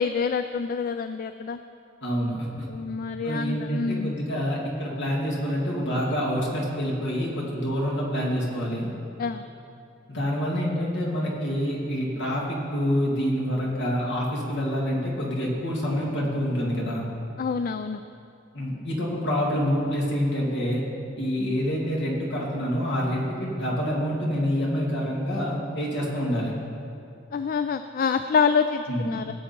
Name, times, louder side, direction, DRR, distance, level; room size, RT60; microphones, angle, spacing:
voice 1, 0.0-1.6 2.7-4.2 9.2-9.4 17.4-18.0 27.3-29.3, left 5 dB, 50° left, 10 dB, 0.3 m, -26 dB
voice 2, 2.0-2.7 3.2-8.9 10.1-17.1 18.5-20.8 21.2-26.5 28.9-29.1, equal, 65° left, -3 dB, 2.6 m, -27 dB
18.5 x 7.7 x 4.5 m, 2.6 s
head